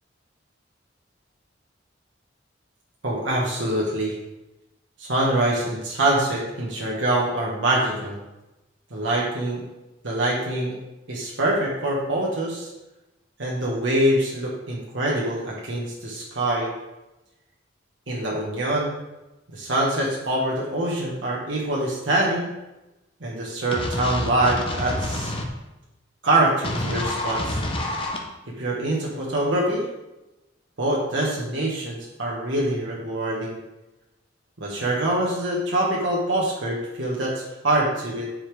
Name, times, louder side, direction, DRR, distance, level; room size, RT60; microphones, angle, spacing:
voice 1, 3.0-4.1 5.0-8.2 8.9-9.6 10.0-10.7 11.1-12.7 13.4-16.7 18.1-19.0 19.5-22.5 23.2-25.3 26.2-27.6 28.6-29.8 30.8-33.6 34.6-38.3, right 1 dB, 80° right, -4 dB, 1.5 m, -24 dB
sound 1, 23.7-25.5 26.6-28.2, left 1 dB, 30° left, 0.9 m, -28 dB
9.6 x 5.0 x 3.5 m, 0.99 s
head